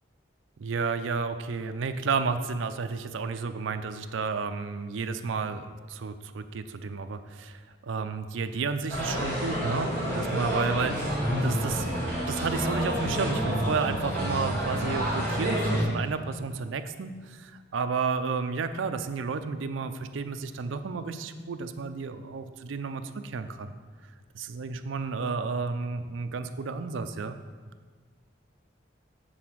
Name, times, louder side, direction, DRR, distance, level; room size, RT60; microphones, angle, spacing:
voice 1, 0.6-11.9 12.3-23.7 24.3-27.4, right 4 dB, 80° right, 9 dB, 0.5 m, -32 dB
sound 1, 8.9-15.8, equal, 10° left, 2.1 m, -29 dB
7.8 x 3.9 x 6.1 m, 1.5 s
head